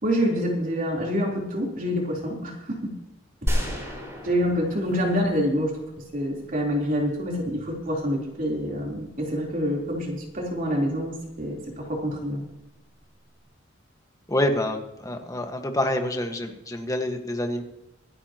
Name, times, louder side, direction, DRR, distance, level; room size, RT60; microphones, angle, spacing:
voice 1, 0.0-2.9 3.4-3.6 4.2-5.7 6.1-12.4, equal, 45° right, -2 dB, 3.6 m, -27 dB
sound 1, 3.5-6.4, equal, 15° right, 5.0 m, -31 dB
voice 2, 14.3-17.6, left 1 dB, 20° left, 4 dB, 1.5 m, -27 dB
26.0 x 9.8 x 3.0 m, 0.90 s
head